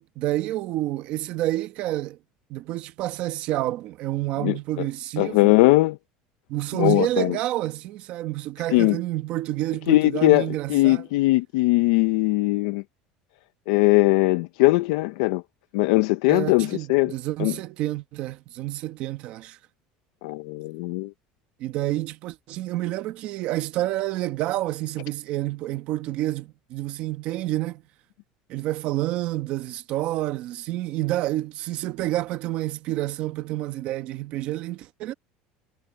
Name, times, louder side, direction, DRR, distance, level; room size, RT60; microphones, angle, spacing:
voice 1, 0.0-2.2 2.5-5.5 6.5-11.0 16.3-19.6 21.6-27.8 28.5-35.1, right 15 dB, 45° right, 1.1 m, -29 dB
voice 2, 4.4-4.9 5.2-6.0 6.8-7.4 8.7-9.0 9.9-12.8 13.7-15.4 15.7-17.1 17.4-17.5 20.2-21.1, left 20 dB, 80° left, 0.7 m, -20 dB
cardioid pair, 180°, 3 cm